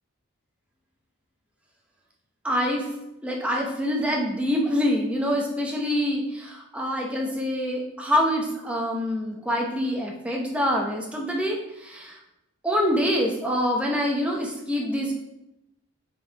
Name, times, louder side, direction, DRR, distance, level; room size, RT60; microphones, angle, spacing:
voice 1, 2.4-2.9 3.2-12.2 12.6-15.1, equal, 5° right, -1 dB, 0.9 m, -25 dB
6.7 x 4.3 x 4.7 m, 0.90 s
head